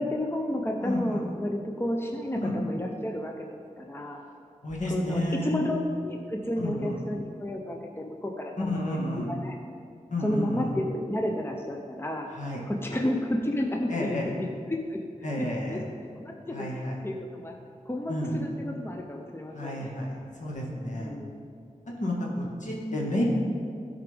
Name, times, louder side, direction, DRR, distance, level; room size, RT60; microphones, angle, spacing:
voice 1, 0.0-3.5 3.8-4.2 4.9-9.5 10.2-12.3 12.7-15.1 15.4-15.8 16.2-16.8 17.0-17.6 17.9-19.9 20.9-21.4, left 1 dB, 20° left, 2 dB, 0.7 m, -31 dB
voice 2, 0.8-1.2 2.4-2.5 4.6-5.6 6.6-7.0 8.6-9.3 10.1-10.7 12.4-12.6 13.9-14.3 15.2-15.8 16.5-16.9 18.1-18.4 19.5-21.1 22.0-23.2, left 1 dB, 65° left, -3 dB, 1.7 m, -31 dB
12.5 x 4.8 x 3.5 m, 2.3 s
cardioid pair, 45°, 13 cm